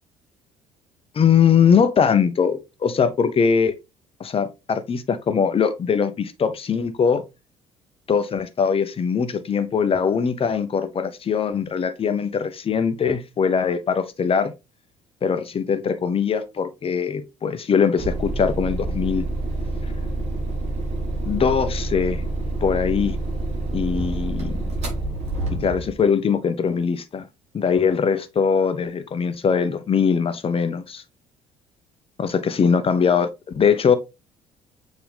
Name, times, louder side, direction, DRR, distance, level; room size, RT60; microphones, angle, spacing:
voice 1, 1.1-3.7 4.2-7.2 8.1-14.5 15.2-19.2 21.3-22.2 22.6-23.2 23.7-24.6 25.6-27.3 27.5-31.0 32.2-34.0, left 6 dB, 35° left, 1.0 m, -21 dB
sound 1, 18.0-26.0, right 2 dB, 40° right, 3.3 m, -27 dB
7.0 x 3.9 x 3.5 m
figure-of-eight pair, 55°, 18 cm